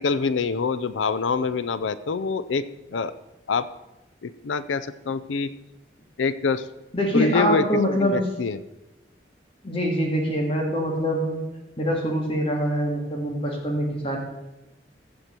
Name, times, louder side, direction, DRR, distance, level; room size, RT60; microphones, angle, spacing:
voice 1, 0.0-2.6 2.9-3.1 3.5-3.7 4.2-5.5 6.2-6.7 7.1-8.6, left 4 dB, 85° left, 15 dB, 0.5 m, -25 dB
voice 2, 6.9-8.3 9.6-11.4 11.8-14.2, equal, 30° left, 0 dB, 2.0 m, -24 dB
15.0 x 7.8 x 4.4 m, 1.0 s
head